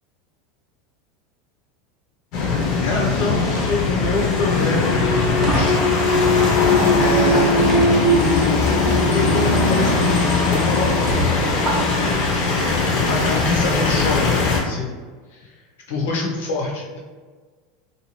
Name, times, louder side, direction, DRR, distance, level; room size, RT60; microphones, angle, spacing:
sound 1, 2.3-14.6, left 3 dB, 45° left, 0.6 m, -19 dB
voice 1, 2.8-5.9 7.0-7.5 9.1-14.9 15.3-15.5 15.9-17.0, left 3 dB, 80° left, -2 dB, 0.8 m, -26 dB
sound 2, 4.9-6.6 7.1-8.2 9.2-9.4 9.8-9.9 10.4-10.5 11.1-12.2, right 1 dB, 20° right, 0.7 m, -27 dB
2.6 x 2.3 x 3.0 m, 1.4 s
supercardioid pair, 160°, 0 cm